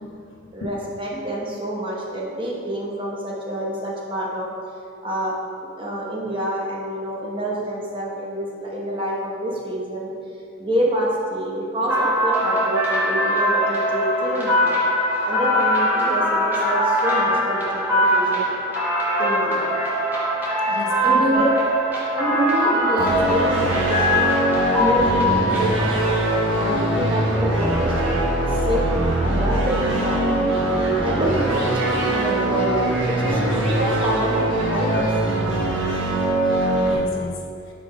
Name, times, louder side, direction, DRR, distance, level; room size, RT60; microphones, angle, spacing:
voice 1, 0.0-0.7 19.9-20.0 20.7-21.5 30.8-31.0 36.8-37.4, left 2 dB, 90° left, 0 dB, 0.9 m, -35 dB
voice 2, 0.5-4.5 5.0-5.3 5.8-10.1 10.6-14.8 15.2-18.5 19.2-19.6 21.0-21.5 22.1-24.2 24.7-28.2 28.5-28.8 29.2-30.5 31.0-35.1, right 1 dB, 25° right, -4 dB, 1.0 m, -27 dB
sound 1, 11.9-25.6, equal, 10° right, 1.4 m, -21 dB
sound 2, 23.0-37.0, right 1 dB, 75° right, 1.2 m, -22 dB
5.2 x 4.7 x 5.0 m, 2.5 s
head